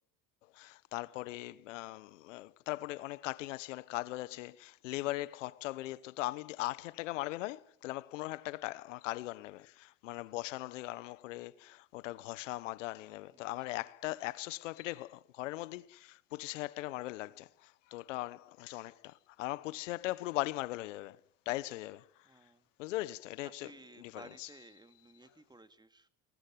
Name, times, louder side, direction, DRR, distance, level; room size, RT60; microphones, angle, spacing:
voice 1, 0.5-21.2 21.4-22.3 22.8-23.7 24.0-24.5, left 18 dB, 90° left, 1.0 m, -39 dB
voice 2, 13.3-13.8 22.2-22.7 23.4-26.1, right 2 dB, 10° right, 2.3 m, -56 dB
20.0 x 20.0 x 9.3 m
hypercardioid pair, 75°, 36 cm